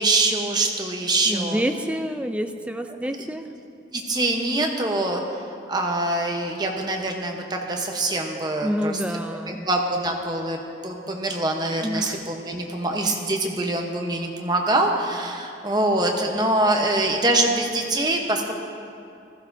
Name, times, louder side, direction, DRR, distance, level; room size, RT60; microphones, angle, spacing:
voice 1, 0.0-1.6 3.9-9.0 9.7-18.5, right 2 dB, 20° right, 1 dB, 0.9 m, -24 dB
voice 2, 1.3-3.5 8.6-9.7 11.8-12.2, equal, 5° right, 7 dB, 0.4 m, -28 dB
15.5 x 14.0 x 2.7 m, 2.5 s
head